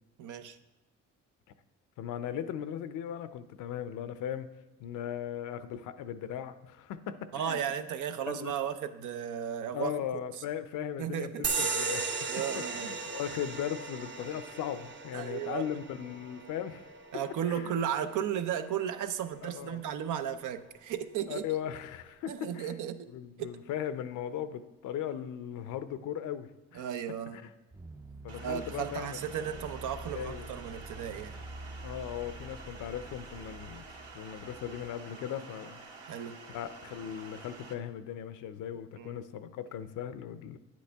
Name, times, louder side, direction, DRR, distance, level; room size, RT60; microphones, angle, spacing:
voice 1, 0.2-0.6 7.3-9.9 11.0-11.7 12.3-12.9 15.1-15.7 17.1-21.5 22.3-23.1 23.4-23.6 26.7-27.4 28.4-31.4 36.0-36.4 39.0-39.2, right 9 dB, 80° right, 10 dB, 0.7 m, -35 dB
voice 2, 2.0-4.5 4.8-7.6 8.3-8.5 9.7-12.3 12.8-16.9 17.5-17.7 19.4-19.8 21.3-22.7 23.1-26.9 27.3-27.5 28.2-29.2 30.1-30.5 31.8-35.8 36.5-40.6, left 9 dB, 85° left, 12 dB, 0.6 m, -38 dB
sound 1, 11.4-18.5, right 4 dB, 40° right, 0.8 m, -36 dB
sound 2, 27.7-34.9, right 2 dB, 10° right, 0.4 m, -47 dB
sound 3, 28.3-37.7, right 4 dB, 55° right, 1.7 m, -49 dB
9.9 x 8.4 x 3.4 m, 1.1 s
cardioid pair, 90°, 30 cm